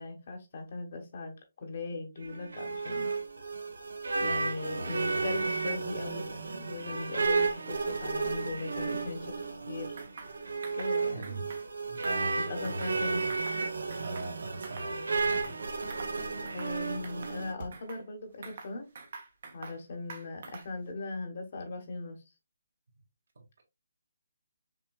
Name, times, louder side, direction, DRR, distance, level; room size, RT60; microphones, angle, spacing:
voice 1, 0.0-3.2 4.2-9.4 9.7-10.0 10.7-11.3 12.5-13.2 16.5-18.9 19.5-22.2, left 3 dB, 40° left, 1.1 m, -39 dB
sound 1, 2.2-17.5, right 4 dB, 90° right, 0.9 m, -33 dB
sound 2, 10.0-10.3 10.6-10.9 11.2-11.6 12.0-13.0 13.3-13.6 13.9-14.9 15.2-15.6 15.9-16.2 16.5-16.8 17.0-18.0 18.4-19.8 20.1-20.8, right 4 dB, 45° right, 1.0 m, -46 dB
voice 2, 11.1-11.5 11.9-13.2 14.0-15.6 23.4-23.6, right 3 dB, 60° right, 1.8 m, -41 dB
5.7 x 3.1 x 2.3 m
hypercardioid pair, 170°, 0 cm